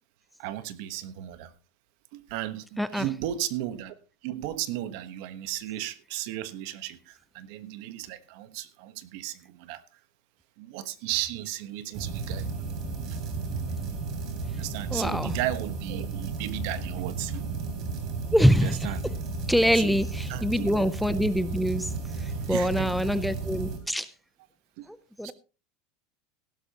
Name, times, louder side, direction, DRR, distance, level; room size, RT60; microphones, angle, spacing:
voice 1, 0.4-1.5 2.1-4.0 4.2-9.8 10.6-12.5 13.1-13.2 14.6-17.5 18.6-19.0 19.7-20.8 22.2-22.9 24.8-24.9 25.2-25.3, right 13 dB, 60° right, 13 dB, 1.2 m, -35 dB
sound 1, 11.9-23.8, right 4 dB, 40° right, 3.5 m, -33 dB
voice 2, 14.9-15.3 18.3-18.8 19.5-21.9 22.2-24.1 25.2-25.3, equal, ahead, 14 dB, 0.6 m, -24 dB
16.5 x 12.0 x 2.9 m, 0.32 s
supercardioid pair, 145°, 0 cm